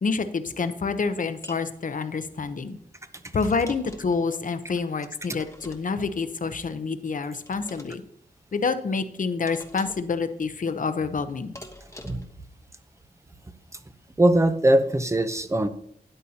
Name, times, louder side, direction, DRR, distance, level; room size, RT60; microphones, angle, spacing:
voice 1, 0.0-2.8 3.3-8.0 8.5-11.6, left 4 dB, 55° left, 10 dB, 0.8 m, -28 dB
sound 1, 1.4-1.7 3.4-4.2 5.4-6.1 7.5-8.0 9.5-10.1 11.6-12.4, left 1 dB, 15° left, 1.1 m, -45 dB
voice 2, 14.2-15.7, right 1 dB, 15° right, 10 dB, 0.7 m, -21 dB
12.5 x 10.0 x 2.9 m, 0.69 s
wide cardioid pair, 100°, 16 cm